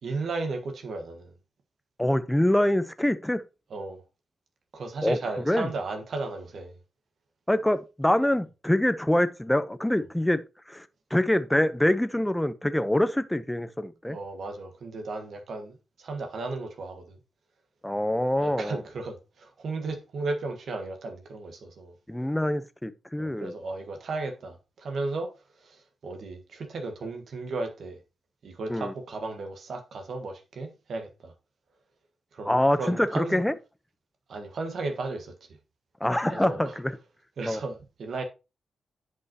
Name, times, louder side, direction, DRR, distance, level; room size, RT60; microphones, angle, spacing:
voice 1, 0.0-1.3 3.7-4.0 4.7-6.7 14.1-17.2 18.4-21.9 23.2-25.3 25.6-28.0 28.4-31.3 32.3-33.4 34.3-35.3 36.3-36.8 37.4-38.2, right 3 dB, 65° right, 1.5 m, -35 dB
voice 2, 2.0-3.4 5.0-5.2 5.5-5.7 7.5-10.9 11.1-14.2 17.8-18.8 22.1-23.5 28.7-28.9 32.4-33.5 36.0-37.0 37.5-37.6, left 1 dB, 10° left, 0.8 m, -25 dB
9.9 x 5.4 x 2.9 m
cardioid pair, 55°, 0 cm